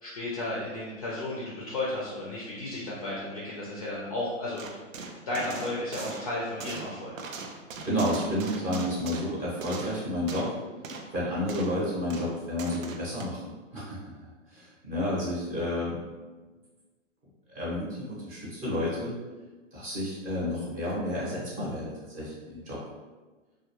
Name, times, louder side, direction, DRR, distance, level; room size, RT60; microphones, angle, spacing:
voice 1, 0.0-4.6 5.3-7.1, left 2 dB, 30° left, -6 dB, 0.4 m, -33 dB
sound 1, 4.6-10.6 10.8-11.1 11.5-11.8 12.1-13.2, right 4 dB, 90° right, 0.5 m, -40 dB
voice 2, 7.8-10.5 11.1-13.4 13.7-16.0 17.5-19.1 19.7-22.8, left 1 dB, 20° right, -7 dB, 0.8 m, -31 dB
2.2 x 2.1 x 2.9 m, 1.3 s
hypercardioid pair, 135°, 39 cm